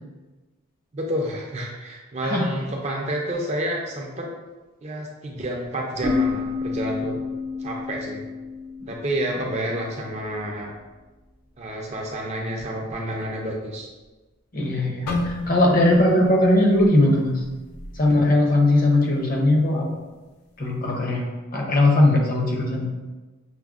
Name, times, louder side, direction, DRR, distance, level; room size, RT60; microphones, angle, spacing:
voice 1, 0.9-4.3 4.8-7.2 7.6-8.2 8.9-10.7 11.6-13.9, right 1 dB, 30° right, 0 dB, 0.4 m, -29 dB
sound 1, 6.0-9.6, left 4 dB, 65° right, 0.7 m, -29 dB
voice 2, 14.5-17.4 17.9-19.9 20.6-21.2 21.5-22.9, left 1 dB, 40° left, -1 dB, 0.6 m, -19 dB
sound 2, 15.1-19.1 19.5-19.7 20.4-20.7, left 2 dB, 85° left, 0.4 m, -34 dB
5.8 x 2.0 x 2.3 m, 1.2 s
head